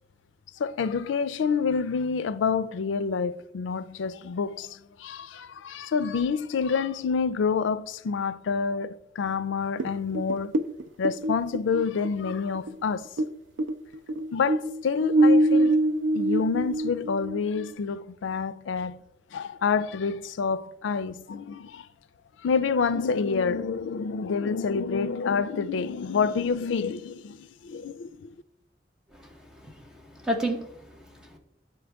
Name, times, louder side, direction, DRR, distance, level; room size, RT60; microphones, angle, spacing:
voice 1, 0.6-10.5 11.0-13.1 14.3-15.8 16.1-19.0 19.3-21.9 22.4-28.3, left 5 dB, 85° left, 0.4 m, -28 dB
sound 1, 9.8-13.3 13.6-17.7, right 1 dB, 90° right, 0.4 m, -24 dB
voice 2, 29.1-31.4, right 1 dB, 5° right, 0.9 m, -33 dB
11.5 x 4.2 x 3.4 m
head